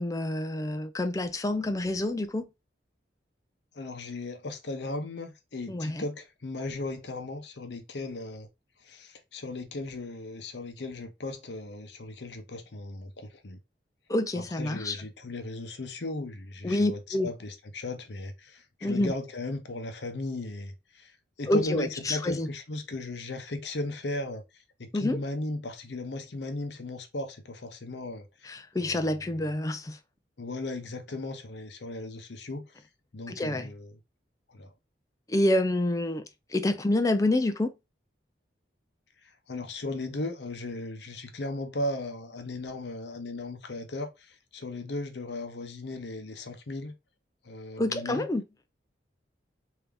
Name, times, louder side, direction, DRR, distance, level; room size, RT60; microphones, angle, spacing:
voice 1, 0.0-2.5 5.7-6.0 14.1-15.0 16.6-17.3 18.8-19.1 21.5-22.5 24.9-25.2 28.4-30.0 33.3-33.7 35.3-36.2 36.5-37.7 47.8-48.4, left 1 dB, 20° left, 0.4 m, -27 dB
voice 2, 3.7-8.5 8.8-13.6 14.5-24.4 24.8-28.3 28.8-29.4 30.4-32.8 33.1-33.9 34.5-34.7 39.2-46.9 47.4-48.3, left 2 dB, 70° left, 0.7 m, -37 dB
3.4 x 2.7 x 3.4 m
head